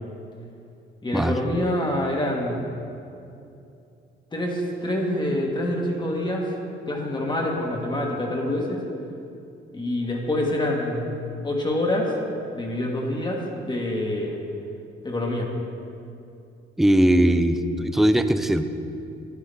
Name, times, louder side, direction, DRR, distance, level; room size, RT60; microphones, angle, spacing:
voice 1, 1.0-2.6 4.3-6.4 6.9-8.8 9.7-12.1 12.5-14.4 15.0-15.5, left 1 dB, 20° left, -1 dB, 1.4 m, -26 dB
voice 2, 16.8-18.6, right 1 dB, ahead, 9 dB, 0.4 m, -19 dB
9.3 x 9.2 x 3.5 m, 2.6 s
cardioid pair, 90°, 20 cm